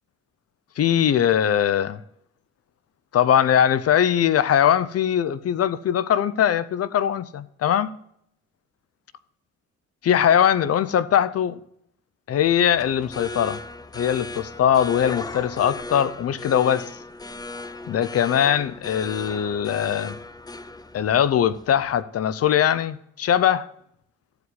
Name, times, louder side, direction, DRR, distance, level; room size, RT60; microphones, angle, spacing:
voice 1, 0.8-2.0 3.1-7.9 10.0-11.6 12.3-13.6 13.9-16.9 17.9-20.2 20.9-23.7, left 9 dB, 55° left, 0.6 m, -21 dB
sound 1, 12.4-22.0, left 2 dB, 15° left, 0.5 m, -37 dB
14.0 x 4.9 x 8.3 m
cardioid pair, 90°, 30 cm